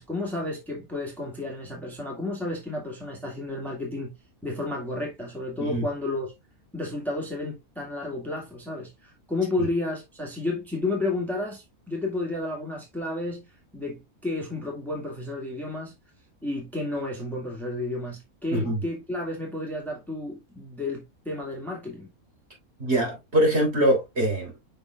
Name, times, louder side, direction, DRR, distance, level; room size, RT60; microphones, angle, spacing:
voice 1, 0.0-4.1 4.4-6.3 6.7-13.5 13.7-15.9 16.4-22.1, left 2 dB, ahead, 1.9 m, -31 dB
voice 2, 22.8-24.6, right 1 dB, 45° right, 3.8 m, -23 dB
6.9 x 5.7 x 2.4 m
omnidirectional pair, 1.5 m